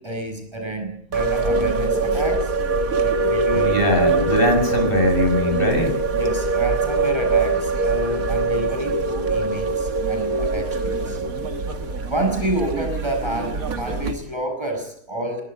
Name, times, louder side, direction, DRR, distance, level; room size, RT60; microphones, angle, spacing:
voice 1, 0.0-2.5 3.0-4.3 6.1-11.2 12.1-15.4, right 1 dB, 20° right, 5 dB, 7.4 m, -29 dB
sound 1, 1.1-14.1, right 3 dB, 80° right, 2.3 m, -23 dB
voice 2, 3.5-6.0, left 2 dB, 40° left, 4 dB, 7.0 m, -21 dB
22.5 x 20.5 x 8.3 m, 0.64 s
omnidirectional pair, 1.5 m